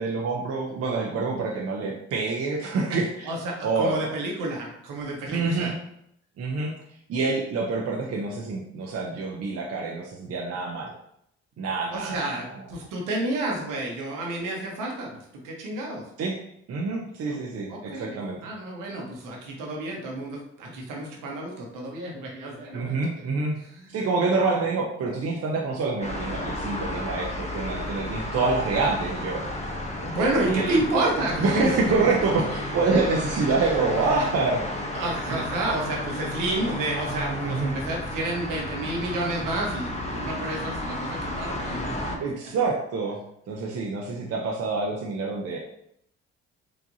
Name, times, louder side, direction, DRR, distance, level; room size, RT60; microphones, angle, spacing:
voice 1, 0.0-3.3 3.6-4.1 5.3-5.7 6.4-6.7 7.1-10.9 11.6-12.3 16.2-16.4 16.7-18.4 22.7-23.6 23.9-29.4 30.5-30.8 31.4-34.6 35.3-35.4 37.4-37.7 42.2-43.2 43.5-45.6, right 3 dB, 45° right, -1 dB, 0.7 m, -26 dB
voice 2, 3.2-5.7 11.9-16.1 17.3-17.4 17.7-23.0 23.7-23.9 30.0-32.1 34.9-42.2, right 2 dB, 65° right, -1 dB, 1.1 m, -30 dB
sound 1, 26.0-42.2, left 1 dB, 20° left, 0.8 m, -32 dB
4.7 x 2.6 x 2.7 m, 0.73 s
hypercardioid pair, 50°, 35 cm